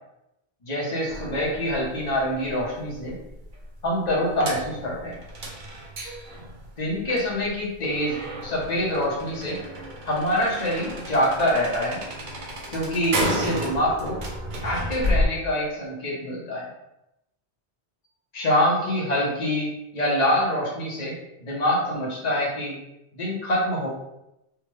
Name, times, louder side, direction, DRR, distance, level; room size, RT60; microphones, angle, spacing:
voice 1, 0.6-3.2 3.8-5.2 6.8-9.6 10.0-12.0 12.7-14.2 14.6-16.7 18.3-22.8 23.1-23.9, left 1 dB, 40° left, -5 dB, 1.1 m, -25 dB
sound 1, 1.1-15.2, equal, 55° right, 0.8 m, -32 dB
3.5 x 2.4 x 3.1 m, 0.89 s
omnidirectional pair, 1.0 m